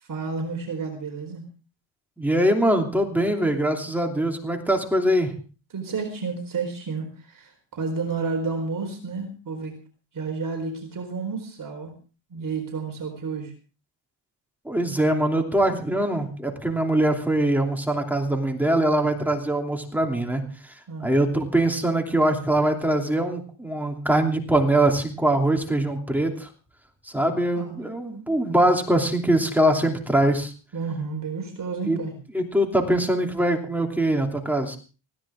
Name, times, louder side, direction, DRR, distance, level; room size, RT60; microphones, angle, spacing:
voice 1, 0.0-1.4 5.7-9.7 10.1-11.9 12.3-13.5 20.9-21.1 27.2-27.8 30.7-32.1, right 4 dB, 40° right, 3 dB, 4.3 m, -31 dB
voice 2, 2.2-5.3 14.6-20.7 21.0-26.5 27.1-30.5 31.8-32.0 32.3-34.8, right 1 dB, 5° right, 2 dB, 2.9 m, -22 dB
20.0 x 16.5 x 3.7 m, 0.36 s
cardioid pair, 150°, 49 cm